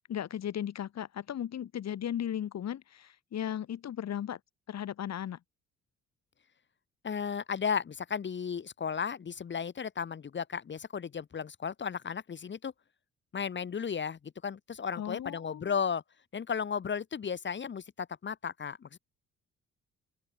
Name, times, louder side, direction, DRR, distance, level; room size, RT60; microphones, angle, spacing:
voice 1, 0.0-4.4 4.7-5.4 15.0-15.7, left 10 dB, 60° left, 2.2 m, -36 dB
voice 2, 7.0-12.7 13.3-16.0 16.3-19.0, left 6 dB, 40° left, 1.2 m, -34 dB
open air
cardioid pair, 90°, 30 cm